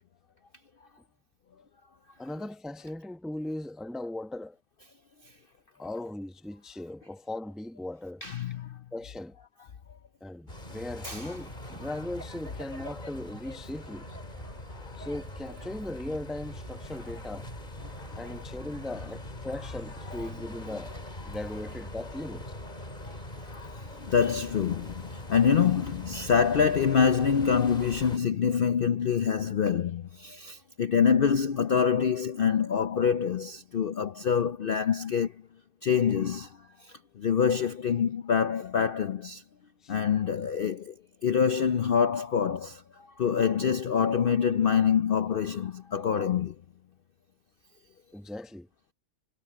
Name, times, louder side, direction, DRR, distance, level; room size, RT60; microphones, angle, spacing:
voice 1, 2.2-4.6 5.8-8.2 8.9-9.4 10.2-14.1 15.0-17.5 18.2-21.0 21.2-22.5 39.8-39.9 48.1-48.7, left 1 dB, ahead, 0.9 m, -38 dB
voice 2, 8.2-8.8 11.0-11.3 23.4-23.7 24.0-35.3 35.8-36.5 37.2-39.4 39.9-40.9 41.2-42.8 43.2-46.5, left 7 dB, 55° left, 0.6 m, -25 dB
sound 1, 10.5-28.2, left 1 dB, 30° left, 3.7 m, -42 dB
sound 2, 14.0-20.2, right 1 dB, 35° right, 5.0 m, -50 dB
omnidirectional pair, 1.5 m